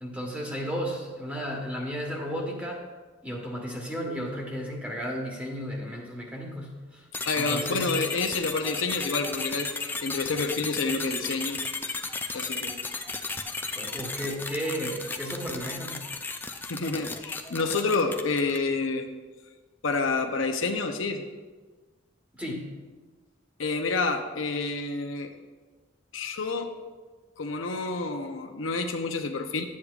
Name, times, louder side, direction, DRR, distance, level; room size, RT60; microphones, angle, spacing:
voice 1, 0.0-2.8 3.2-7.1 7.3-8.0 13.7-16.1 22.3-22.8, equal, 5° right, 0 dB, 1.3 m, -34 dB
sound 1, 7.1-18.7, left 3 dB, 10° left, 0.3 m, -34 dB
voice 2, 7.3-11.6 11.8-12.0 12.3-12.8 16.7-19.1 19.8-21.2 23.6-25.3 26.1-26.7 27.4-29.7, left 3 dB, 90° left, 5 dB, 0.7 m, -29 dB
11.5 x 8.3 x 2.4 m, 1.3 s
head